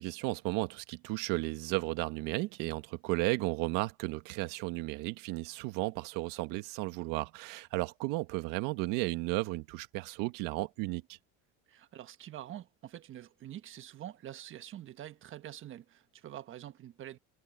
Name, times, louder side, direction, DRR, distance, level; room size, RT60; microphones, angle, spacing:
voice 1, 0.0-11.2, right 20 dB, 70° right, 1.6 m, -34 dB
voice 2, 11.7-17.2, right 12 dB, 40° right, 1.4 m, -46 dB
cardioid pair, 145°, 33 cm